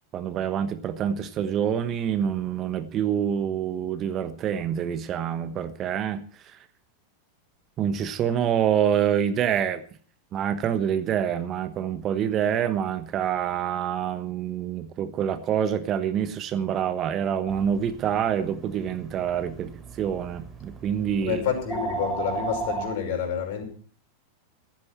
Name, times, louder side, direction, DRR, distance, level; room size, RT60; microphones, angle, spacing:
voice 1, 0.1-6.6 7.8-9.8 10.3-21.4, right 9 dB, 30° right, 12 dB, 1.2 m, -26 dB
sound 1, 17.5-22.9, right 3 dB, 15° right, 4.3 m, -36 dB
voice 2, 21.2-23.6, left 8 dB, 50° left, 5 dB, 5.4 m, -28 dB
15.5 x 14.5 x 4.3 m, 0.43 s
figure-of-eight pair, 90°, 0 cm